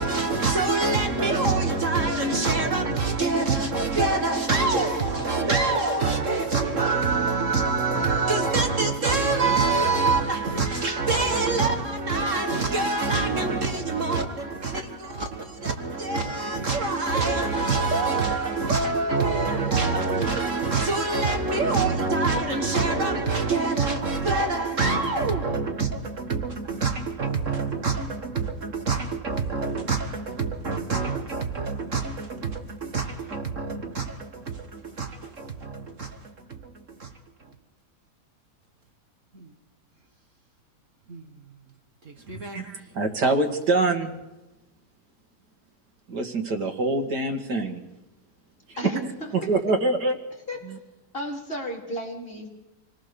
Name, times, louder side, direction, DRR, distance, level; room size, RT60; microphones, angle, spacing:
voice 1, 0.0-36.7 37.0-37.1 39.3-39.5 41.1-41.2 42.1-42.6, right 3 dB, 50° right, 1.8 m, -25 dB
voice 2, 42.3-44.1 46.1-47.8 49.5-50.2 50.6-50.8, right 2 dB, 85° right, 2.6 m, -25 dB
voice 3, 48.8-49.3 50.5-50.6 51.1-52.5, equal, 35° left, 4.4 m, -33 dB
27.0 x 19.0 x 6.9 m
omnidirectional pair, 1.7 m